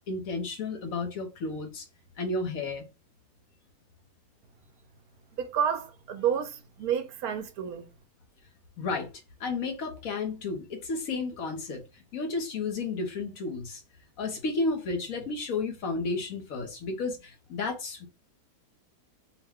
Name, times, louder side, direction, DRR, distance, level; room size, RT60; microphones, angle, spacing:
voice 1, 0.1-1.8 2.2-2.8 8.8-9.1 9.4-11.8 12.1-13.8 14.2-18.1, left 3 dB, 65° left, 1.3 m, -32 dB
voice 2, 5.4-7.9, right 8 dB, 75° right, 1.1 m, -30 dB
4.6 x 2.2 x 3.5 m
omnidirectional pair, 1.7 m